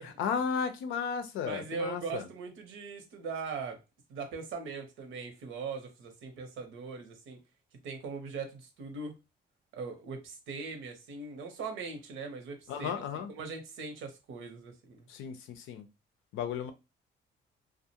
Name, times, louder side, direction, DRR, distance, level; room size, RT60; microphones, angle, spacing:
voice 1, 0.0-2.3 12.7-13.3 15.1-15.9 16.3-16.7, left 6 dB, 85° left, 0.5 m, -34 dB
voice 2, 1.4-3.8 4.1-7.4 7.8-9.1 9.7-15.1, right 4 dB, 80° right, 0.8 m, -40 dB
2.4 x 2.1 x 2.8 m
cardioid pair, 90°, 20 cm